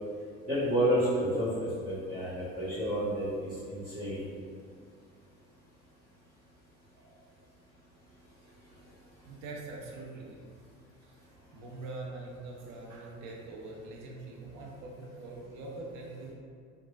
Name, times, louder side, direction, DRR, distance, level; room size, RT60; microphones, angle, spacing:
voice 1, 0.4-1.5 1.8-3.3 3.7-4.2, right 1 dB, 20° right, -13 dB, 1.1 m, -29 dB
voice 2, 6.9-7.3 9.2-10.4 11.0-16.3, right 2 dB, 50° right, -2 dB, 0.6 m, -44 dB
3.1 x 2.1 x 2.4 m, 2.2 s
hypercardioid pair, 60°, 43 cm